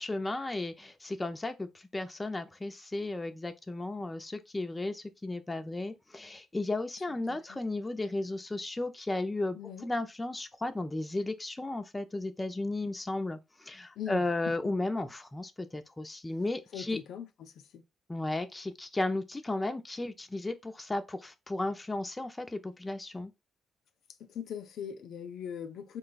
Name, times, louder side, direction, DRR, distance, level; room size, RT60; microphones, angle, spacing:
voice 1, 0.0-17.0 18.1-23.3, left 2 dB, 15° left, 0.5 m, -34 dB
voice 2, 7.1-7.6 9.5-9.9 14.0-14.5 16.7-17.8 24.2-26.0, left 8 dB, 70° left, 0.5 m, -41 dB
3.9 x 2.2 x 3.9 m
cardioid pair, 90°, 0 cm